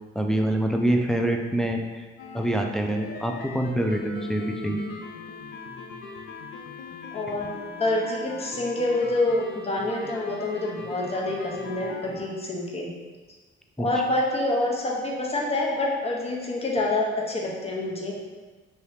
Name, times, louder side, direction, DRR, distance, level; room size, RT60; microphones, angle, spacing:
voice 1, 0.2-1.8 2.3-4.8 13.8-13.9, right 1 dB, 5° left, 2 dB, 0.3 m, -25 dB
sound 1, 2.2-12.3, left 4 dB, 80° left, 0.4 m, -40 dB
voice 2, 7.1-12.9 13.8-18.2, left 2 dB, 30° left, -2 dB, 0.8 m, -27 dB
2.9 x 2.7 x 3.3 m, 1.3 s
cardioid pair, 90°, 20 cm